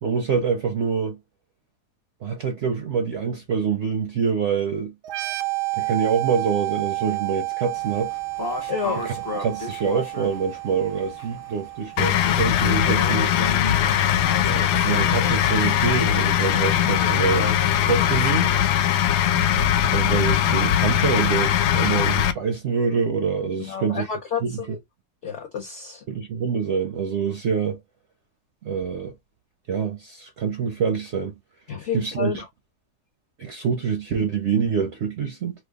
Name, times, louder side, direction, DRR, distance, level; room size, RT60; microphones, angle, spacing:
voice 1, 0.0-1.2 2.2-4.9 5.7-8.1 9.0-9.1 9.4-13.4 14.4-18.5 19.8-24.1 24.4-24.7 26.1-27.8 28.6-29.1 29.7-31.3 31.9-32.4 33.4-35.5, right 6 dB, 60° right, 0.8 m, -25 dB
sound 1, 5.0-12.5, right 23 dB, 85° right, 1.2 m, -30 dB
sound 2, 7.7-18.6, left 2 dB, 30° left, 0.4 m, -35 dB
voice 2, 8.7-9.0 23.6-24.8 25.2-26.0 31.7-32.5, left 7 dB, 55° left, 1.0 m, -30 dB
sound 3, 12.0-22.3, left 10 dB, 85° left, 1.2 m, -20 dB
3.1 x 2.3 x 3.4 m
omnidirectional pair, 1.7 m